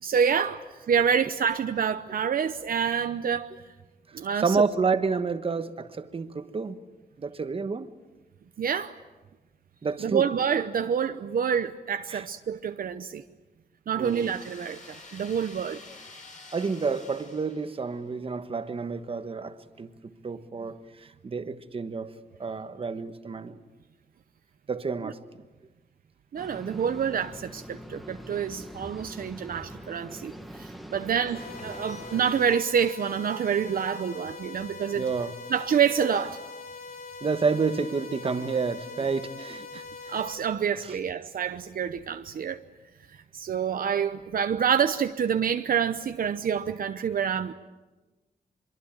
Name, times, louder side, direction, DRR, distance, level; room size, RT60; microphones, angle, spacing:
voice 1, 0.0-3.5 4.1-4.6 8.6-8.9 10.0-13.2 13.9-15.8 25.0-25.1 26.3-35.0 35.5-36.4 40.1-42.6 43.3-47.5, right 7 dB, 65° right, 0.8 m, -27 dB
voice 2, 4.4-6.8 7.2-7.9 9.8-10.3 12.1-12.2 14.0-14.3 16.5-19.9 20.2-20.8 21.2-22.1 22.4-23.6 24.7-25.2 34.9-35.4 37.2-40.1 40.9-41.0, right 4 dB, 35° right, 1.3 m, -29 dB
sound 1, 14.0-18.1, left 3 dB, 50° left, 7.0 m, -49 dB
sound 2, 26.4-32.5, equal, ahead, 1.5 m, -43 dB
sound 3, 31.3-40.3, left 4 dB, 70° left, 3.9 m, -42 dB
25.0 x 23.5 x 8.9 m
wide cardioid pair, 160°, 16 cm